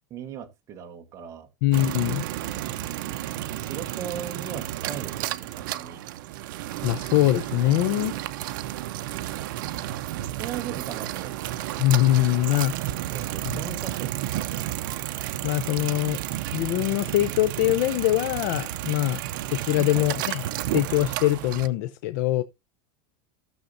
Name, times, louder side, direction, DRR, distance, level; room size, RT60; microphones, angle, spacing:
voice 1, 0.1-1.5 3.6-6.0 10.4-11.5 13.1-14.1 14.4-14.7 19.9-20.2, right 8 dB, 25° right, 1.1 m, -38 dB
voice 2, 1.6-2.2 6.8-8.2 11.8-12.7 15.4-16.2 16.5-19.2 19.6-20.4 20.7-22.4, left 15 dB, 55° left, 0.5 m, -23 dB
sound 1, 1.7-21.7, right 14 dB, 70° right, 0.6 m, -32 dB
15.5 x 6.5 x 2.6 m
supercardioid pair, 165°, 11 cm